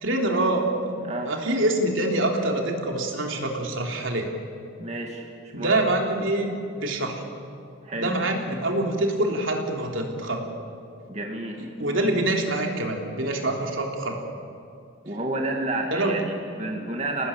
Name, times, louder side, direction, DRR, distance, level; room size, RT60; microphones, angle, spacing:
voice 1, 0.0-0.9 1.2-4.3 5.5-7.2 8.0-10.4 11.6-14.2 15.9-16.2, right 1 dB, 70° right, 1 dB, 3.5 m, -25 dB
voice 2, 4.8-5.2 5.6-5.8 7.8-8.2 11.1-11.7 15.0-17.3, right 2 dB, 35° right, 1 dB, 2.2 m, -30 dB
28.0 x 19.0 x 8.7 m, 2.5 s
head